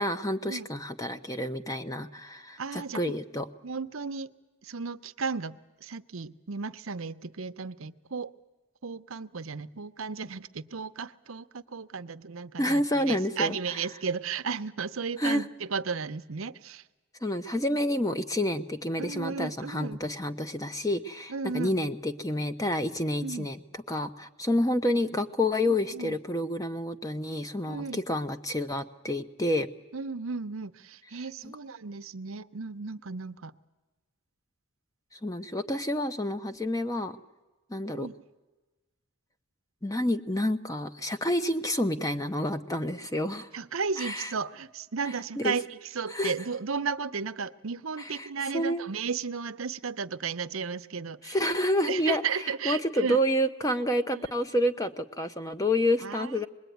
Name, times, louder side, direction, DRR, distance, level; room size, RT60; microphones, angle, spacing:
voice 1, 0.0-3.5 12.6-13.6 15.2-15.4 17.2-23.6 23.9-29.7 31.4-31.6 35.1-37.2 37.7-38.1 39.8-43.5 44.0-44.3 45.4-45.5 46.1-46.3 48.0-48.3 48.5-48.8 51.2-52.2 52.6-56.5, left 1 dB, 15° left, 9 dB, 0.8 m, -29 dB
voice 2, 2.6-3.2 3.6-4.3 4.6-8.3 8.8-16.9 19.0-20.0 21.3-21.7 23.2-23.5 25.6-26.2 27.7-28.0 29.9-33.6 37.9-38.1 43.5-51.4 51.9-53.2 54.1-54.3 56.0-56.5, right 5 dB, 75° right, 12 dB, 0.8 m, -34 dB
25.5 x 21.0 x 9.3 m, 1.2 s
head